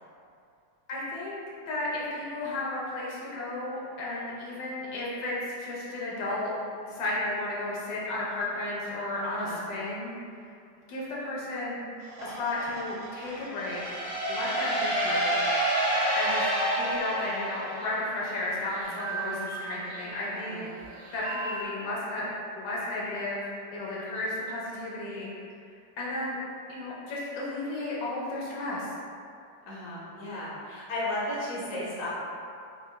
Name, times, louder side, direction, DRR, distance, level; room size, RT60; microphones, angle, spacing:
voice 1, 0.9-1.4 1.7-6.5 6.9-10.1 10.9-11.8 12.2-13.8 14.3-15.4 16.2-20.6 21.1-22.3 22.6-25.3 26.0-26.4 26.7-28.9, left 2 dB, 85° left, -6 dB, 1.5 m, -33 dB
sound 1, 12.0-17.7, right 1 dB, 65° right, 0.9 m, -46 dB
sound 2, 13.6-18.3, right 1 dB, 35° right, 0.5 m, -28 dB
sound 3, 14.7-21.6, right 4 dB, 85° right, 0.6 m, -41 dB
voice 2, 20.2-20.7 29.7-32.1, left 1 dB, 55° left, -8 dB, 1.2 m, -35 dB
4.9 x 2.2 x 2.2 m, 2.5 s
omnidirectional pair, 1.9 m